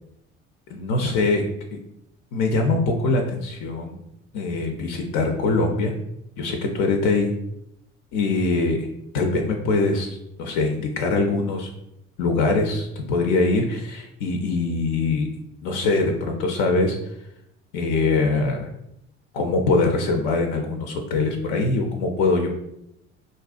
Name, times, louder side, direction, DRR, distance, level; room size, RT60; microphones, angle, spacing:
voice 1, 0.7-1.4 2.3-4.0 4.3-5.9 6.4-7.3 8.1-8.9 9.1-11.7 12.2-15.3 15.6-17.0 17.7-18.7 19.3-22.5, left 3 dB, 60° left, 3 dB, 0.4 m, -23 dB
2.4 x 2.1 x 2.4 m, 0.81 s
hypercardioid pair, 55°, 35 cm